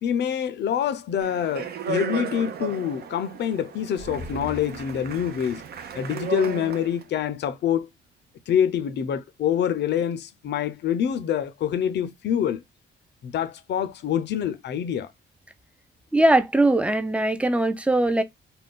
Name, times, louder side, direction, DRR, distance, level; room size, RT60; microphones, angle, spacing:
voice 1, 0.0-5.6 5.9-7.9 8.5-12.6 13.2-15.1, left 9 dB, 60° left, 0.5 m, -26 dB
Speech, 1.2-7.0, right 5 dB, 55° right, 0.6 m, -34 dB
sound 1, 4.0-7.4 7.7-7.8, equal, 85° right, 0.8 m, -42 dB
voice 2, 16.1-18.2, right 1 dB, 5° right, 0.4 m, -20 dB
2.4 x 2.2 x 3.6 m
cardioid pair, 90°, 20 cm